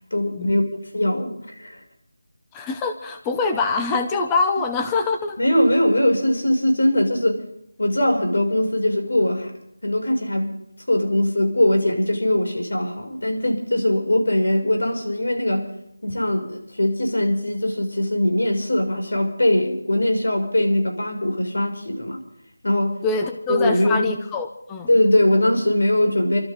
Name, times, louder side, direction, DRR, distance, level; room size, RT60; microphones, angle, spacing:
voice 1, 0.1-0.7 0.9-1.8 5.4-7.4 7.8-9.5 9.8-10.5 10.9-15.6 16.0-22.2 22.6-23.0 23.5-24.1 24.9-26.4, left 1 dB, 90° left, 3 dB, 6.3 m, -21 dB
voice 2, 2.5-5.4 23.0-24.9, left 4 dB, 5° left, 5 dB, 0.5 m, -24 dB
28.5 x 13.0 x 3.9 m, 0.77 s
figure-of-eight pair, 180°, 0 cm